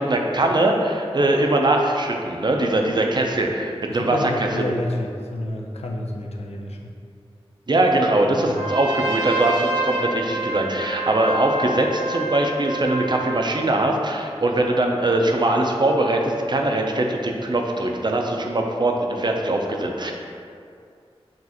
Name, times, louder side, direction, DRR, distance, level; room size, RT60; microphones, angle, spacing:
voice 1, 0.0-4.6 7.7-20.1, right 1 dB, 45° right, 2 dB, 0.5 m, -21 dB
voice 2, 3.9-6.8 8.3-8.6, left 1 dB, 85° left, 0 dB, 0.5 m, -29 dB
Trumpet, 8.4-13.5, right 2 dB, 80° right, 0.8 m, -27 dB
6.1 x 2.5 x 2.8 m, 2.3 s
wide cardioid pair, 65°, 10 cm